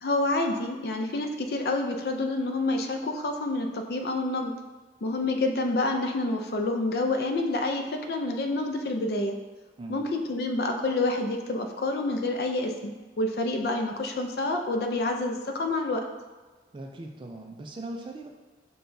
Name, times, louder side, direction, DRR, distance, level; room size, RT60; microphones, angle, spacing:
voice 1, 0.0-4.5 5.0-9.4 9.9-12.9 13.2-16.1, left 2 dB, 60° left, 4 dB, 0.4 m, -28 dB
voice 2, 16.7-18.3, right 2 dB, 25° right, 2 dB, 0.3 m, -39 dB
6.7 x 2.3 x 2.6 m, 1.3 s
head